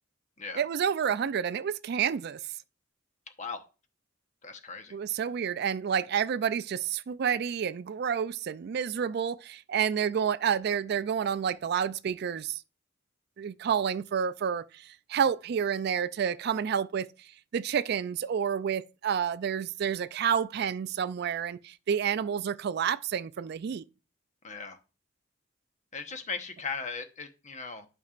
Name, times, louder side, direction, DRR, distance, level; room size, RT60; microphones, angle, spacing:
voice 1, 0.6-2.4 4.9-12.6 13.4-17.3 17.5-23.8, right 7 dB, 55° right, 0.3 m, -29 dB
voice 2, 4.4-4.9 24.4-24.8 25.9-27.9, left 5 dB, 40° left, 1.0 m, -38 dB
11.5 x 5.4 x 2.5 m
head